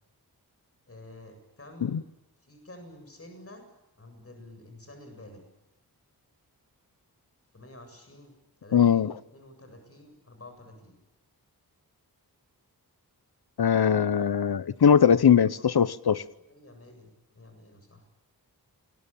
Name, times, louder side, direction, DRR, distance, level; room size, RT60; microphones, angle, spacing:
voice 1, 0.9-2.0 2.4-3.6 4.0-5.4 7.5-8.3 8.6-10.9 15.3-15.4 16.5-18.0, left 1 dB, 40° left, 6 dB, 7.9 m, -49 dB
voice 2, 8.7-9.1 13.6-16.2, left 7 dB, 80° left, 15 dB, 1.0 m, -21 dB
29.0 x 22.0 x 8.9 m, 0.97 s
wide cardioid pair, 90°, 37 cm